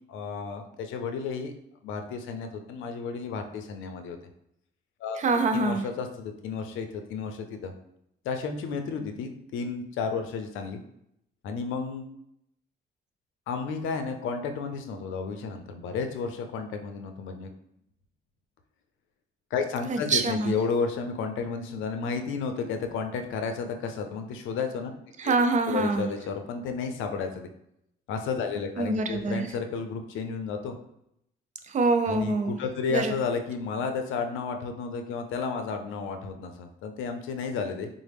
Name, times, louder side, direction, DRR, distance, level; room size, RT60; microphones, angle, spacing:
voice 1, 0.1-1.5 1.8-4.2 5.0-5.2 5.5-7.7 8.2-10.8 11.4-12.1 13.5-17.5 19.5-24.9 25.2-25.3 25.7-27.5 28.1-30.8 32.1-37.9, left 5 dB, 85° left, 6 dB, 0.5 m, -32 dB
voice 2, 5.2-5.8 19.9-20.5 25.2-26.1 28.8-29.5 31.7-32.6 32.9-33.1, right 3 dB, 40° right, 7 dB, 0.5 m, -25 dB
3.9 x 2.0 x 3.4 m, 0.77 s
cardioid pair, 90°, 20 cm